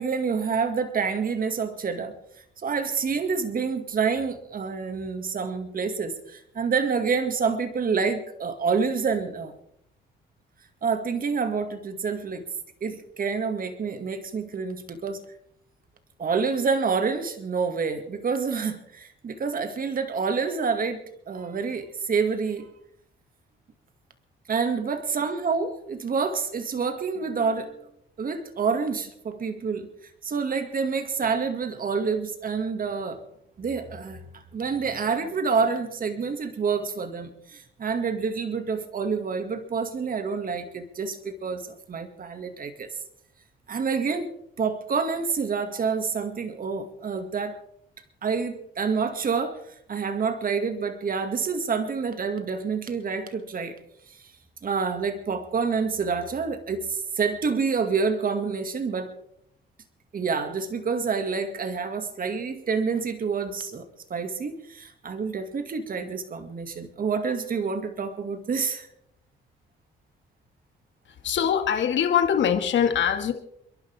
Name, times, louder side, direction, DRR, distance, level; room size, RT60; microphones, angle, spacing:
voice 1, 0.0-2.1 2.6-9.5 10.8-12.4 12.8-15.2 16.2-22.7 24.5-27.8 28.2-29.9 30.2-33.2 33.6-42.9 43.7-47.6 48.2-49.6 49.9-53.8 54.1-54.2 54.6-59.1 60.1-63.8 64.1-68.9, right 5 dB, 45° right, 8 dB, 2.1 m, -28 dB
voice 2, 71.2-73.3, left 8 dB, 70° left, 7 dB, 2.1 m, -22 dB
28.5 x 11.5 x 3.5 m, 0.72 s
cardioid pair, 90°, 20 cm